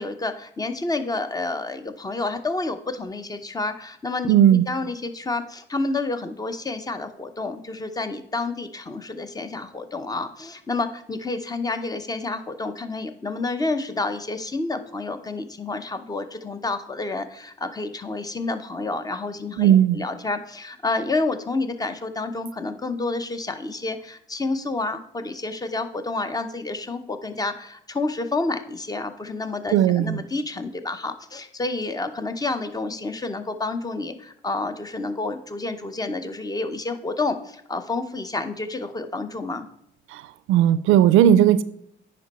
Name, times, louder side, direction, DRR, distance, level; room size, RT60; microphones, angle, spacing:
voice 1, 0.0-4.3 4.7-39.7, left 3 dB, 20° left, 0.8 m, -29 dB
voice 2, 4.3-4.6 19.6-20.0 29.7-30.2 40.1-40.2 40.5-41.6, right 10 dB, 90° right, 0.4 m, -16 dB
9.3 x 5.4 x 4.1 m
cardioid pair, 90°, 20 cm